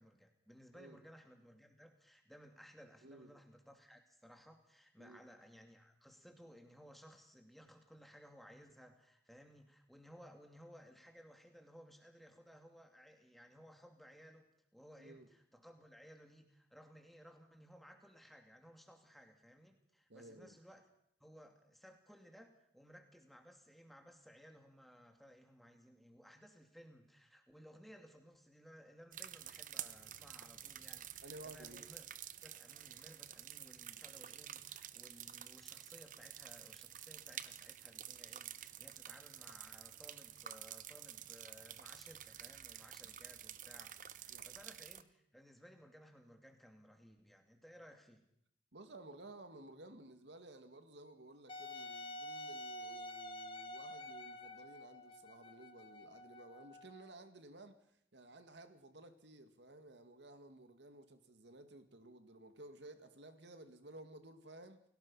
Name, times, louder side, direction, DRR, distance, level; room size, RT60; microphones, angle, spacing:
voice 1, 0.0-20.8 21.2-32.1 32.4-48.3, equal, ahead, 3 dB, 2.6 m, -60 dB
voice 2, 3.0-3.3 5.0-5.3 15.0-15.3 20.1-20.6 31.2-31.8 44.3-44.5 48.7-57.9 58.1-64.8, right 2 dB, 90° right, 8 dB, 2.2 m, -55 dB
sound 1, 29.1-45.0, right 11 dB, 45° right, 0.8 m, -50 dB
Wind instrument woodwind instrument, 51.5-57.1, left 1 dB, 30° left, 1.5 m, -49 dB
29.0 x 17.5 x 5.7 m, 0.72 s
head